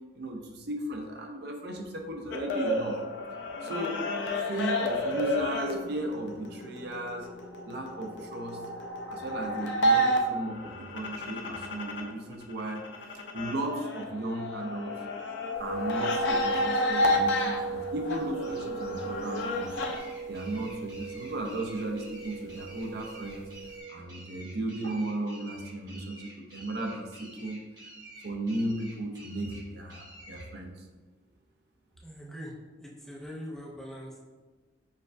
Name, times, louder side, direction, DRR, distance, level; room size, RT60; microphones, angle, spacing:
voice 1, 0.2-3.0 3.6-4.0 4.5-7.3 7.7-8.7 9.1-12.8 13.1-14.9 15.6-19.7 20.0-23.5 23.9-27.6 28.2-30.9, right 1 dB, 60° right, 2 dB, 0.5 m, -35 dB
sound 1, 2.3-12.1 12.4-20.0, equal, 70° left, 0.5 m, -31 dB
sound 2, 15.5-23.8, right 5 dB, 45° left, 1.1 m, -38 dB
sound 3, 18.1-30.5, right 1 dB, 20° right, 1.0 m, -50 dB
voice 2, 32.0-32.5 32.8-34.2, equal, 5° left, -3 dB, 0.5 m, -42 dB
6.4 x 2.3 x 2.5 m, 1.3 s
head